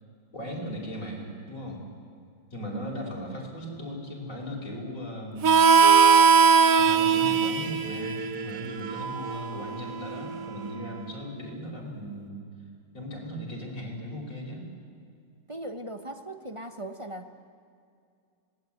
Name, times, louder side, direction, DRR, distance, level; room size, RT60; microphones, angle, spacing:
voice 1, 0.3-1.9 2.5-5.6 6.8-12.4 12.9-14.7, equal, 40° left, -1 dB, 5.6 m, -37 dB
Harmonica, 5.4-10.7, right 6 dB, 55° right, 1.0 m, -21 dB
voice 2, 15.5-17.5, right 1 dB, 30° right, 6 dB, 0.6 m, -39 dB
26.5 x 18.5 x 9.3 m, 2.4 s
omnidirectional pair, 2.2 m